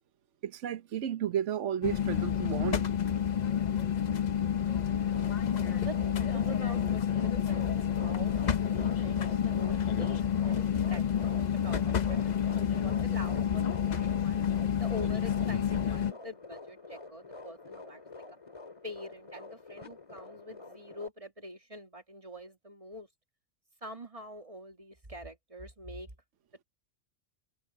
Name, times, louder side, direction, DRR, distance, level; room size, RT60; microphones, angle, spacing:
voice 1, 0.4-2.8, right 9 dB, 70° right, 1.2 m, -33 dB
sound 1, 1.8-16.1, left 8 dB, 45° left, 0.7 m, -29 dB
voice 2, 4.8-14.5 14.8-18.2 18.8-23.1 23.8-26.1, equal, 25° right, 2.3 m, -45 dB
sound 2, 4.9-21.1, left 3 dB, 25° left, 2.1 m, -47 dB
omnidirectional pair, 1.3 m